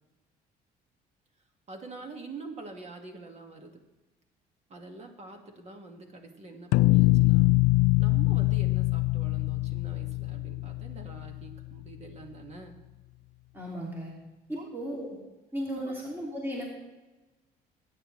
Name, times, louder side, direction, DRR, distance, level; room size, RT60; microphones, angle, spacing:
voice 1, 1.7-3.8 4.7-7.5 8.0-12.8 14.6-14.8 15.8-15.9, right 3 dB, 40° right, 4 dB, 1.9 m, -45 dB
sound 1, 6.7-11.6, left 20 dB, 85° left, 0.4 m, -24 dB
voice 2, 13.5-14.1 14.5-15.2 15.5-16.7, equal, 15° right, -3 dB, 2.6 m, -35 dB
22.0 x 9.2 x 3.2 m, 1.1 s
cardioid pair, 110°, 17 cm